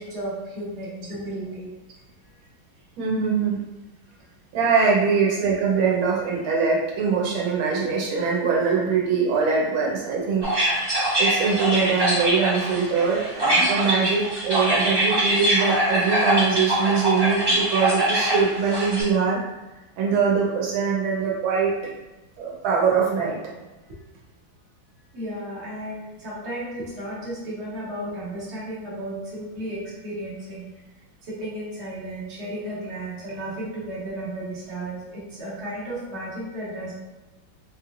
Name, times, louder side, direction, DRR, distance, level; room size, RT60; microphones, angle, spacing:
voice 1, 0.0-1.7 23.9-24.0 25.1-30.7 31.2-36.9, right 1 dB, 40° right, -8 dB, 1.4 m, -34 dB
voice 2, 3.0-3.6 4.5-10.4 11.2-19.4 20.0-21.7 22.4-23.4, right 5 dB, 90° right, -4 dB, 1.6 m, -22 dB
sound 1, 10.4-19.0, right 1 dB, 15° right, 1.0 m, -23 dB
4.2 x 3.1 x 2.4 m, 1.1 s
omnidirectional pair, 2.1 m